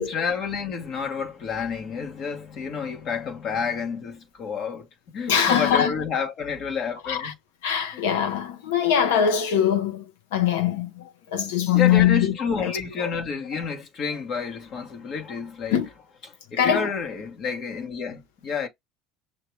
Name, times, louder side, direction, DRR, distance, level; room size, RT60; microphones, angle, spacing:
voice 1, 0.0-4.9 5.1-7.3 7.9-8.0 11.7-15.8 16.5-18.7, left 5 dB, 50° left, 1.4 m, -29 dB
voice 2, 5.3-5.9 7.0-7.3 7.6-10.0 10.3-12.3 12.6-12.7 13.0-13.1 15.7-15.9 16.6-16.9, left 9 dB, 90° left, 1.1 m, -22 dB
5.9 x 2.8 x 3.2 m
supercardioid pair, 100°, 0 cm